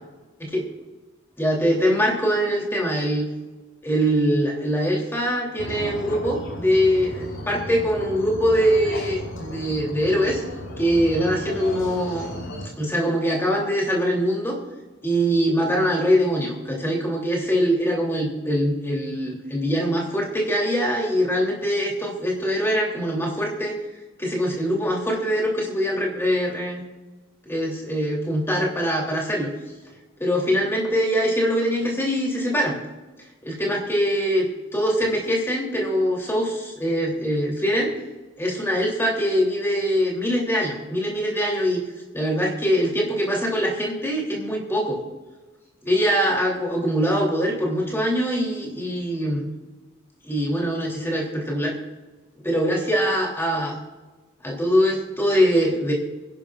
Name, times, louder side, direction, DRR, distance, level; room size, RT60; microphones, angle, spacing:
voice 1, 1.4-3.3 3.8-10.4 10.8-12.3 12.8-14.6 15.0-23.7 24.2-26.8 27.5-29.5 30.2-32.8 33.4-34.4 34.7-37.9 38.4-41.8 42.1-45.0 45.8-49.4 50.2-51.7 52.4-53.8 54.4-55.9, equal, 10° left, -2 dB, 2.9 m, -23 dB
sound 1, 5.6-12.7, equal, 85° left, 4.6 m, -35 dB
23.5 x 11.0 x 2.4 m, 1.2 s
head